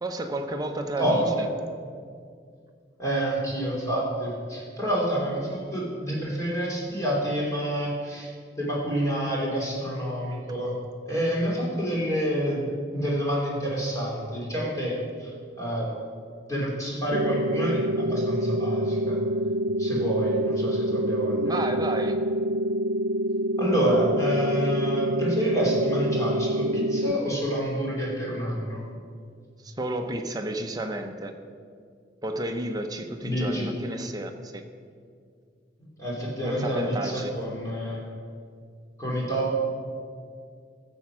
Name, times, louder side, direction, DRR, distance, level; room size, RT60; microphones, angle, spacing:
voice 1, 0.0-1.2 21.4-22.2 29.6-31.3 32.2-34.6 36.4-37.3, right 1 dB, 20° right, 5 dB, 0.8 m, -31 dB
voice 2, 1.0-1.5 3.0-10.8 11.0-15.9 16.5-19.2 19.8-21.6 23.6-28.9 33.2-33.8 36.0-38.0 39.0-39.6, right 1 dB, 15° left, -4 dB, 3.2 m, -28 dB
sound 1, 17.1-27.1, equal, 85° right, 0.6 m, -26 dB
15.0 x 7.2 x 6.2 m, 2.2 s
head